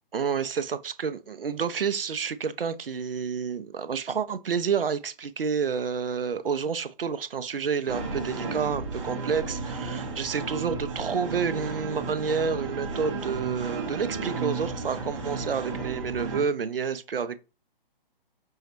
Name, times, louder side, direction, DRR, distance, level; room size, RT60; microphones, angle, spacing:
voice 1, 0.1-17.4, right 6 dB, 75° right, 0.5 m, -29 dB
sound 1, 7.9-16.4, right 4 dB, 30° right, 0.7 m, -33 dB
5.4 x 2.1 x 2.8 m
figure-of-eight pair, 135°, 29 cm